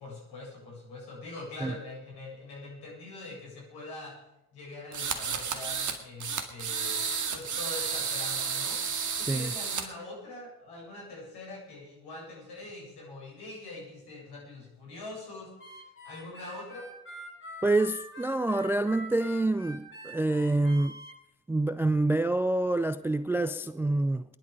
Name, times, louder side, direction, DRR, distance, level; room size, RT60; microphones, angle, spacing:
voice 1, 0.0-4.2 4.5-7.0 7.3-8.8 9.2-16.8, left 2 dB, 60° left, -2 dB, 8.0 m, -43 dB
sound 1, 4.9-6.0 6.2-9.8, right 6 dB, 40° right, 2.1 m, -32 dB
Harmonica, 15.6-21.1, equal, 25° left, 6.3 m, -45 dB
voice 2, 17.6-21.0 21.5-24.2, right 2 dB, 5° right, 13 dB, 0.4 m, -27 dB
20.5 x 11.0 x 5.2 m, 0.90 s
figure-of-eight pair, 50°, 45 cm